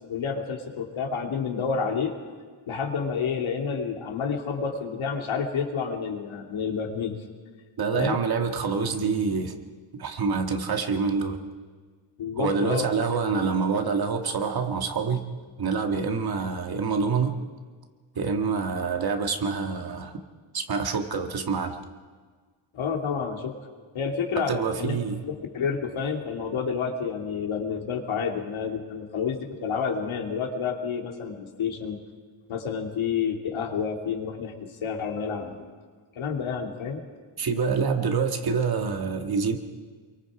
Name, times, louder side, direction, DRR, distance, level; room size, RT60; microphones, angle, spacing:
voice 1, 0.1-2.1 2.7-7.2 7.9-8.2 12.2-12.9 13.3-13.5 22.7-23.6 23.9-25.0 25.2-32.0 32.5-35.8 36.1-37.0, left 6 dB, 75° left, 2 dB, 2.8 m, -29 dB
voice 2, 7.8-9.6 9.9-11.4 12.4-15.2 15.6-17.4 18.2-20.2 20.5-21.8 24.4-25.2 37.4-39.6, right 5 dB, 50° right, 5 dB, 1.9 m, -26 dB
28.0 x 23.0 x 5.0 m, 1.5 s
wide cardioid pair, 175°, 48 cm